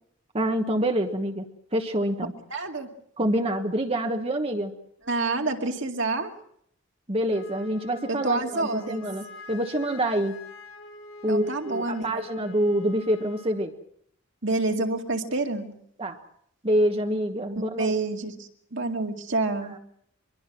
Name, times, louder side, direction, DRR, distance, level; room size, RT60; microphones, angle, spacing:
voice 1, 0.3-2.3 3.2-4.7 7.1-10.4 11.2-13.7 16.0-16.2 16.6-17.9, right 1 dB, 30° right, 4 dB, 1.3 m, -26 dB
voice 2, 2.5-2.9 5.1-6.3 8.1-9.0 11.3-12.3 14.4-15.7 17.8-19.8, right 2 dB, 60° right, 4 dB, 2.3 m, -28 dB
Wind instrument woodwind instrument, 7.3-13.6, left 2 dB, 75° left, 7.7 m, -45 dB
24.5 x 22.5 x 6.1 m, 0.69 s
head